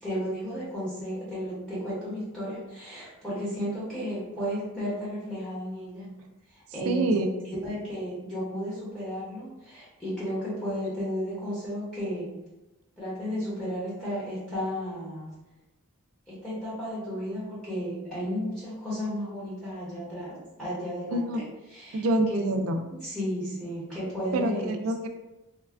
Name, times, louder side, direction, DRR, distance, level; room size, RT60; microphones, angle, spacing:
voice 1, 0.0-6.1 6.5-7.3 7.6-12.3 13.0-15.3 16.3-21.4 21.7-22.4 23.0-24.8, equal, 5° left, -11 dB, 0.8 m, -33 dB
voice 2, 6.9-7.3 21.1-21.4 21.9-22.8 24.3-25.1, right 1 dB, 65° right, 6 dB, 0.3 m, -26 dB
3.2 x 2.2 x 2.4 m, 1.0 s
head